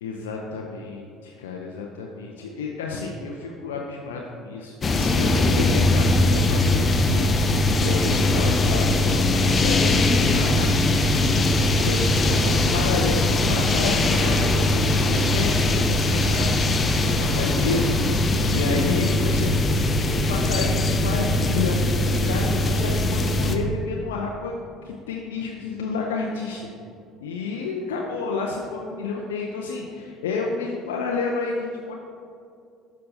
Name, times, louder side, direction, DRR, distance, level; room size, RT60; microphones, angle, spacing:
voice 1, 0.0-7.4 7.8-10.7 11.0-19.5 20.1-24.6 24.8-26.7 27.2-31.9, left 4 dB, 70° left, 0 dB, 0.5 m, -30 dB
sound 1, 4.8-23.6, left 2 dB, 30° left, 0.6 m, -21 dB
12.0 x 5.5 x 2.6 m, 2.5 s
figure-of-eight pair, 55°, 0 cm